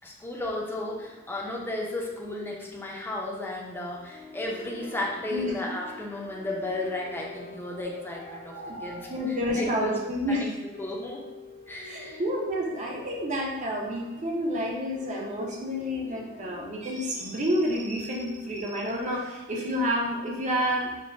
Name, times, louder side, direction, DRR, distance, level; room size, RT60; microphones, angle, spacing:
voice 1, 0.0-8.6 8.8-9.1 9.5-10.0 10.3-11.2 11.7-12.2, left 2 dB, 10° left, -2 dB, 0.6 m, -34 dB
sound 1, 0.7-18.7, left 3 dB, 50° left, 0.9 m, -48 dB
voice 2, 8.3-10.4 11.8-20.9, equal, 35° right, -2 dB, 0.7 m, -29 dB
6.0 x 2.1 x 2.6 m, 1.0 s
head